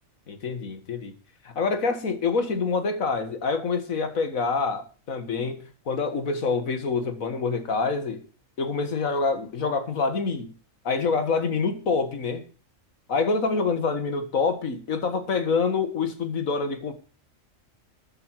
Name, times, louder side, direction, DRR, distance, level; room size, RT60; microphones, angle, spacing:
voice 1, 0.3-1.1 1.5-5.6 5.9-8.2 8.6-10.5 10.8-12.4 13.1-16.9, left 4 dB, 80° left, 9 dB, 2.1 m, -26 dB
13.5 x 9.8 x 4.7 m, 0.37 s
omnidirectional pair, 1.4 m